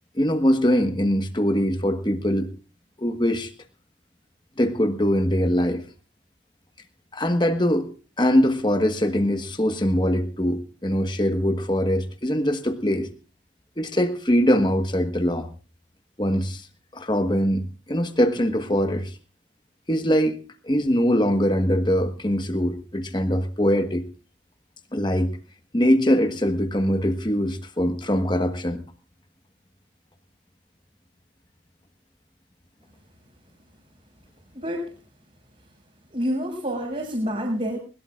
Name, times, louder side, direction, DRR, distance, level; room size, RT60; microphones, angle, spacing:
voice 1, 0.2-2.5 3.0-3.5 4.6-5.8 7.1-7.9 8.2-13.1 13.8-15.5 16.2-16.7 16.9-19.1 19.9-20.4 20.6-24.0 24.9-25.4 25.7-28.8, equal, 25° left, 7 dB, 1.4 m, -22 dB
voice 2, 34.5-34.9 36.1-37.8, equal, 40° right, -4 dB, 5.6 m, -27 dB
22.0 x 20.5 x 2.5 m, 0.34 s
head